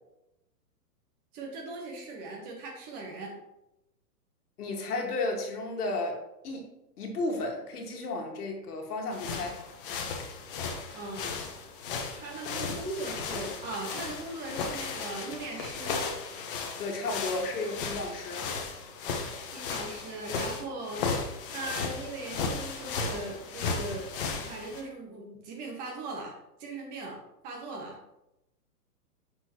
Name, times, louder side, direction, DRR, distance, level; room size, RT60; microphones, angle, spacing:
voice 1, 1.3-3.4 10.9-11.4 12.1-16.0 19.5-21.0 21.5-27.2 27.4-28.0, right 2 dB, 20° right, 0 dB, 1.2 m, -39 dB
voice 2, 4.6-6.7 7.0-9.6 16.8-18.5, left 2 dB, 70° left, 1 dB, 1.9 m, -33 dB
sound 1, 9.1-24.8, left 4 dB, 35° left, 0.9 m, -35 dB
6.9 x 6.4 x 3.0 m, 0.89 s
hypercardioid pair, 155°, 47 cm